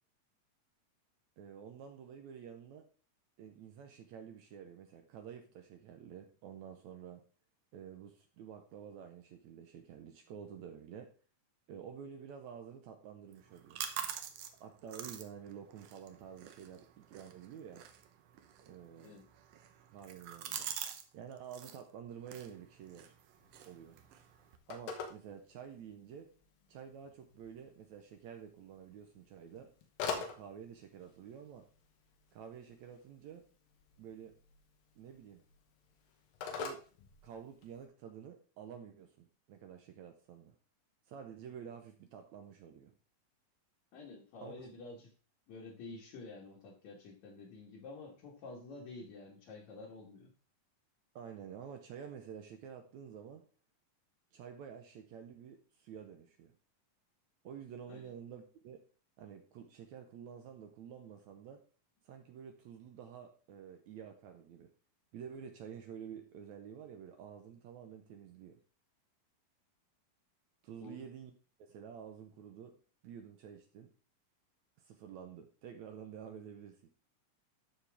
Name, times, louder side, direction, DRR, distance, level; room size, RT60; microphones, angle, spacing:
voice 1, 1.4-2.9 3.4-7.2 7.7-11.1 11.7-13.8 14.6-17.8 18.6-19.2 19.9-20.7 21.1-23.1 23.7-24.0 24.7-26.3 26.7-29.7 30.0-31.7 32.3-33.4 34.0-34.4 35.0-35.4 36.6-36.9 37.2-40.6 41.1-42.9 44.4-44.7 51.2-53.5 54.3-56.5 57.4-58.8 59.2-61.6 62.1-64.7 65.1-68.6 70.6-71.3 71.6-72.8 73.0-73.9 74.8-76.9, right 8 dB, 70° right, 5 dB, 1.9 m, -50 dB
sound 1, 13.3-21.1 21.3-21.8 22.2-24.6, right 9 dB, 90° right, 1.3 m, -46 dB
Telephone, 23.3-37.8, left 5 dB, 90° left, 2.9 m, -47 dB
voice 2, 43.9-45.1 45.5-50.3 57.9-58.1 70.8-71.0, left 3 dB, 60° left, -4 dB, 2.7 m, -50 dB
13.0 x 4.8 x 3.5 m, 0.37 s
omnidirectional pair, 3.9 m